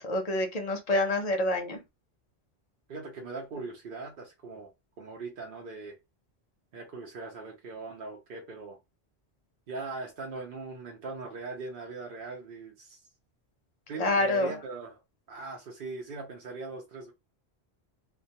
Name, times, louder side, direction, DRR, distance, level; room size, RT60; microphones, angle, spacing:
voice 1, 0.0-1.8 14.0-14.5, left 2 dB, 45° left, 0.6 m, -27 dB
voice 2, 2.9-4.7 5.0-6.0 6.7-8.8 9.7-13.0 13.9-15.0 15.3-17.1, right 3 dB, 60° right, 0.8 m, -40 dB
2.2 x 2.2 x 2.7 m
omnidirectional pair, 1.1 m